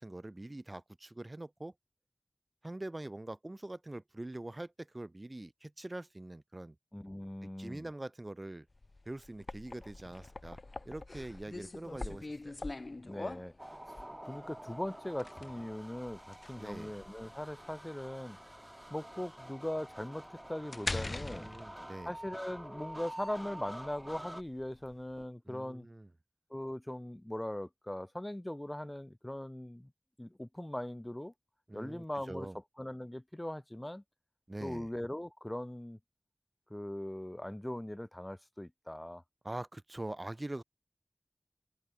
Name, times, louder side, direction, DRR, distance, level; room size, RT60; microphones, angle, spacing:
voice 1, 0.0-1.7 2.6-6.8 7.4-8.7 9.1-10.6 10.9-12.6 16.6-16.9 21.3-22.1 25.5-26.1 31.7-32.6 34.5-34.9 39.4-40.6, right 1 dB, 50° right, 0.4 m, -44 dB
voice 2, 6.9-7.9 13.0-13.5 14.2-18.4 18.9-21.5 22.0-25.9 26.5-29.9 30.2-31.3 31.7-32.5 32.8-34.0 34.6-36.0 36.7-39.2, left 1 dB, 25° left, 0.7 m, -40 dB
sound 1, 8.7-25.2, left 2 dB, 85° left, 1.1 m, -44 dB
sound 2, 13.6-24.4, right 1 dB, 20° right, 1.6 m, -48 dB
wide cardioid pair, 40°, 0 cm